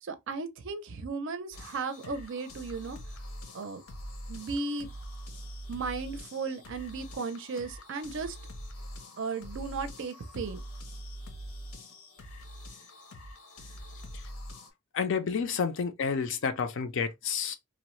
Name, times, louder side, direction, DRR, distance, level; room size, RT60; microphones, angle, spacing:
voice 1, 0.0-3.0 3.5-3.8 4.3-4.9 5.7-8.4 9.2-10.6, right 4 dB, 55° right, 0.5 m, -35 dB
sound 1, 1.5-14.7, equal, 85° left, 0.8 m, -44 dB
voice 2, 14.9-17.6, left 6 dB, 55° left, 0.4 m, -30 dB
2.9 x 2.0 x 2.9 m
head